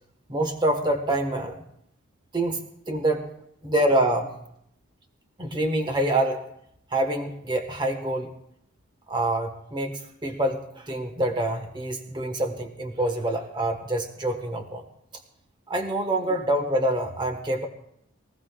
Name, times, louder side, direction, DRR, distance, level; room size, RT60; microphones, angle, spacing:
voice 1, 0.3-1.6 2.3-2.6 2.9-3.3 3.6-4.3 5.4-6.4 6.9-8.3 9.1-14.8 15.7-17.7, right 1 dB, 20° right, 4 dB, 1.2 m, -26 dB
23.5 x 16.0 x 2.3 m, 0.73 s
head